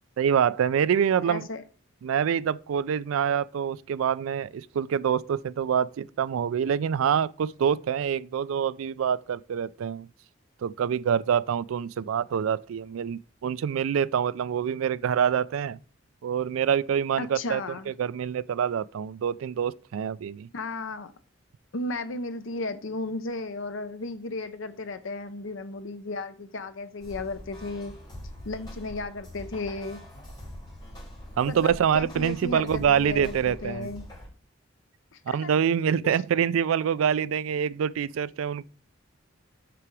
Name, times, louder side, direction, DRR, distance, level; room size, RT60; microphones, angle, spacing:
voice 1, 0.2-1.4 2.0-10.1 10.6-15.8 16.2-17.6 17.9-20.5 31.4-33.9 35.3-38.6, right 8 dB, 90° right, 0.3 m, -26 dB
voice 2, 1.3-1.6 17.2-17.9 20.5-21.1 21.7-27.9 28.4-30.0 31.5-34.1 35.1-35.5 36.0-36.1, left 2 dB, 75° left, 0.7 m, -34 dB
sound 1, 27.0-34.3, equal, 20° left, 4.4 m, -43 dB
6.0 x 6.0 x 4.7 m
head